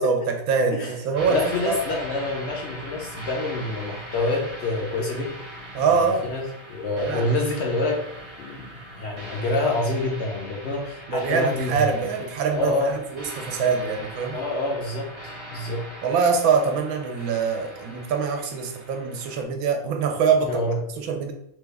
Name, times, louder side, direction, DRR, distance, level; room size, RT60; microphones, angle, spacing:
voice 1, 0.0-1.8 5.7-6.2 7.1-7.2 11.1-14.4 16.0-20.6 21.0-21.3, right 5 dB, 80° right, 5 dB, 1.0 m, -24 dB
sound 1, 1.1-19.4, right 1 dB, 35° right, 0.4 m, -40 dB
voice 2, 1.3-5.4 6.2-6.4 6.7-8.0 8.4-11.9 12.5-13.0 14.3-15.2 15.5-15.9 20.4-20.8, left 2 dB, 65° left, 0 dB, 0.7 m, -27 dB
3.1 x 2.3 x 3.3 m, 0.77 s
omnidirectional pair, 1.5 m